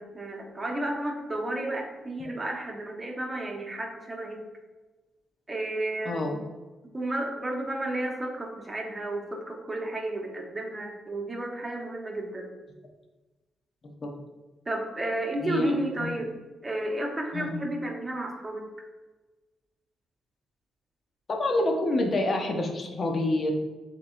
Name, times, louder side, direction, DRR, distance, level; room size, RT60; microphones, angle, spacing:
voice 1, 0.0-4.4 5.5-6.4 6.9-12.5 14.7-16.3 16.6-18.7, right 1 dB, 25° right, 1 dB, 1.2 m, -32 dB
voice 2, 21.3-23.5, left 2 dB, 50° left, 2 dB, 0.9 m, -27 dB
6.5 x 3.0 x 2.6 m, 1.2 s
hypercardioid pair, 45°, 0 cm